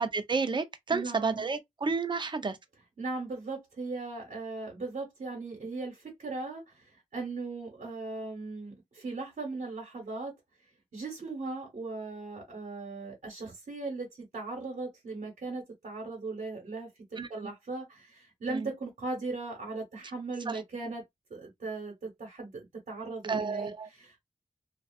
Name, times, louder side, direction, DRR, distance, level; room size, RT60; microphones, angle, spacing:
voice 1, 0.0-2.6 17.2-17.5 18.5-18.7 20.5-20.6 23.3-23.9, right 4 dB, 35° right, 0.5 m, -31 dB
voice 2, 0.9-1.5 3.0-10.3 10.9-21.0 21.3-24.2, right 3 dB, 70° right, 1.1 m, -38 dB
2.5 x 2.3 x 2.3 m
wide cardioid pair, 75°, 14 cm